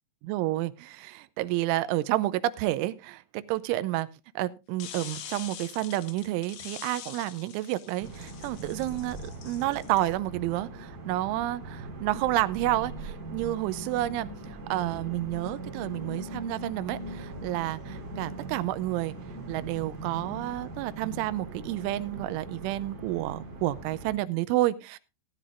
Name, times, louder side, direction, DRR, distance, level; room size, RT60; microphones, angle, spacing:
voice 1, 0.3-4.1 4.4-9.2 9.4-19.1 19.5-25.0, right 16 dB, 80° right, 3.0 m, -30 dB
sound 1, 4.8-10.1, left 10 dB, 75° left, 2.3 m, -45 dB
sound 2, 8.0-24.2, right 2 dB, 35° right, 3.8 m, -40 dB
17.5 x 11.0 x 2.5 m
omnidirectional pair, 5.7 m